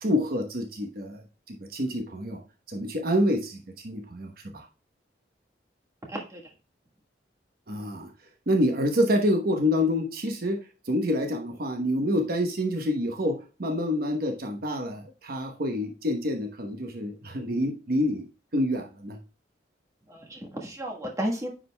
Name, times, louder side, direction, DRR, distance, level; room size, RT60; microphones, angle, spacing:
voice 1, 0.0-2.4 2.7-4.7 7.7-8.1 8.5-10.6 10.8-18.3 18.5-19.2, left 1 dB, 55° right, 3 dB, 1.0 m, -27 dB
voice 2, 6.1-6.4 20.1-21.5, equal, 15° right, 0 dB, 1.4 m, -33 dB
9.7 x 5.0 x 2.3 m, 0.34 s
head